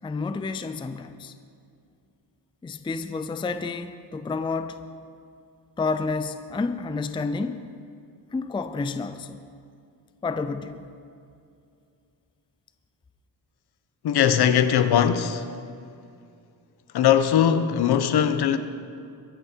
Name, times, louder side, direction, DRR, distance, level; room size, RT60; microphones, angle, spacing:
voice 1, 0.0-1.3 2.6-4.8 5.8-7.6 8.3-9.4 10.2-10.9, left 4 dB, 10° left, 0.5 m, -30 dB
voice 2, 14.0-15.5 16.9-18.6, left 9 dB, 65° left, 1.0 m, -20 dB
23.0 x 10.5 x 4.5 m
cardioid pair, 140°, 42 cm